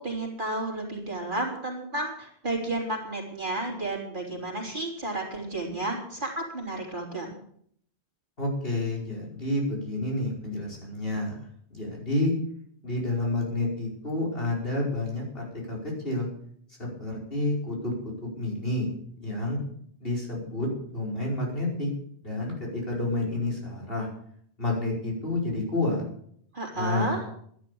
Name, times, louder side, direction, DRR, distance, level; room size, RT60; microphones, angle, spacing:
voice 1, 0.0-7.4 26.5-27.2, right 2 dB, 50° right, -1 dB, 3.7 m, -32 dB
voice 2, 8.4-12.3 12.8-16.3 16.8-17.9 18.4-18.9 19.2-19.6 20.0-21.9 22.2-24.1 24.6-26.0 26.8-27.2, left 2 dB, 60° left, -3 dB, 5.4 m, -29 dB
12.0 x 11.0 x 7.0 m, 0.63 s
omnidirectional pair, 1.1 m